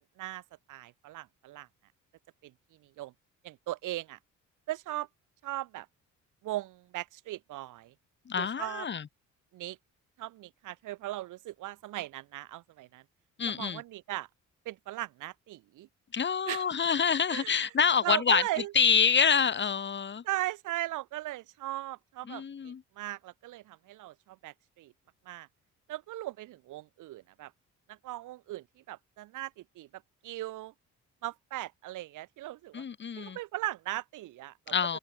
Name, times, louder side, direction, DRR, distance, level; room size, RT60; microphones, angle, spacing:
voice 1, 0.7-1.7 2.4-2.5 2.8-3.1 3.4-4.2 4.7-5.1 5.4-5.9 6.4-7.9 8.4-8.9 9.5-9.8 10.2-13.0 13.4-14.3 14.6-15.9 16.5-16.7 17.3-17.7 18.0-18.7 20.2-24.9 25.2-25.5 25.9-27.5 27.9-30.7 31.2-32.8 33.2-35.0, right 16 dB, 85° right, 1.5 m, -38 dB
voice 2, 8.3-9.0 13.4-13.8 16.1-18.4 18.7-20.2 22.3-22.8 32.7-33.4 34.7-35.0, left 7 dB, 40° left, 1.3 m, -27 dB
open air
cardioid pair, 90°, 30 cm